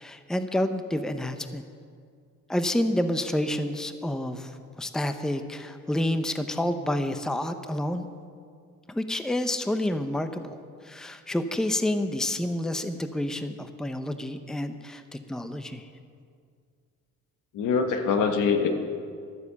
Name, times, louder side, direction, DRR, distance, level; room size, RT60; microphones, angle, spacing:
voice 1, 0.0-1.6 2.5-8.1 8.9-15.9, left 1 dB, ahead, 9 dB, 0.7 m, -29 dB
voice 2, 17.5-18.7, left 5 dB, 80° left, 6 dB, 1.4 m, -23 dB
12.5 x 9.5 x 7.0 m, 2.2 s
cardioid pair, 95°, 31 cm